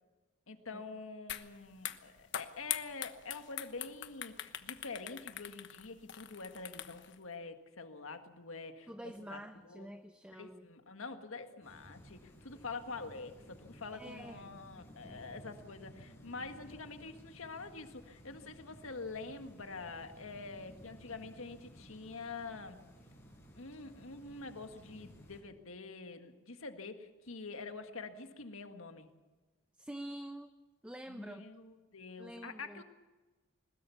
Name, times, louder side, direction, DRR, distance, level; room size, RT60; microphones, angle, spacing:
voice 1, 0.5-8.9 9.3-9.4 9.7-9.9 10.3-22.8 23.6-29.1 31.1-32.8, left 4 dB, 85° left, 7 dB, 1.7 m, -46 dB
sound 1, 1.3-1.5 1.8-7.1, left 11 dB, 60° left, 1.2 m, -42 dB
voice 2, 8.9-10.7 13.9-14.4 29.8-30.5 30.8-31.4 32.2-32.8, right 1 dB, 5° right, 8 dB, 0.7 m, -47 dB
sound 2, 11.6-25.4, equal, 15° left, 5.8 m, -56 dB
22.0 x 20.0 x 7.0 m, 1.2 s
head